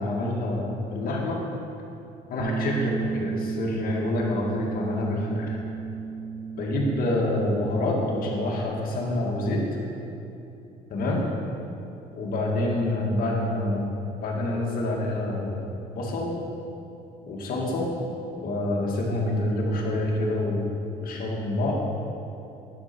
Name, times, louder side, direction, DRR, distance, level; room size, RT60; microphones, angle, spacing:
voice 1, 0.0-1.4 2.3-5.6 6.5-9.6 10.9-11.2 12.1-13.9 14.2-15.6 15.9-16.3 17.3-17.9 18.4-21.7, left 1 dB, 60° left, -2 dB, 1.9 m, -27 dB
Bass guitar, 2.4-8.6, right 5 dB, 50° right, 0.5 m, -33 dB
11.0 x 6.5 x 4.4 m, 2.9 s
cardioid pair, 110°, 17 cm